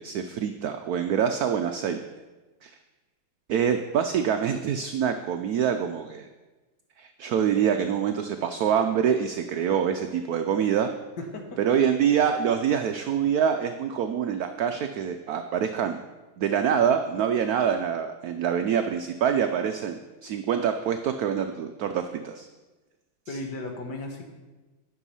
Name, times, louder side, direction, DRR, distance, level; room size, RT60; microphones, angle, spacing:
voice 1, 0.0-2.0 2.6-2.8 3.5-6.3 7.0-10.9 11.6-16.0 16.4-22.5, right 8 dB, 80° right, 7 dB, 0.8 m, -25 dB
voice 2, 11.2-11.8 23.3-24.2, left 2 dB, 60° left, 3 dB, 1.7 m, -35 dB
9.9 x 6.3 x 5.5 m, 1.2 s
omnidirectional pair, 2.1 m